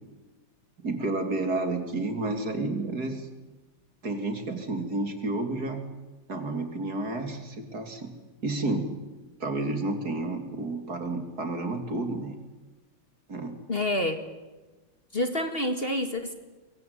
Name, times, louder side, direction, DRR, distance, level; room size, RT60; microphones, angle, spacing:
voice 1, 0.8-3.3 4.0-5.8 6.3-8.1 8.4-8.9 9.4-12.4 13.3-13.6, right 2 dB, 50° right, 6 dB, 3.4 m, -30 dB
voice 2, 13.7-14.2 15.1-16.3, left 1 dB, 30° left, 7 dB, 2.1 m, -28 dB
24.0 x 23.0 x 9.6 m, 1.2 s
omnidirectional pair, 2.1 m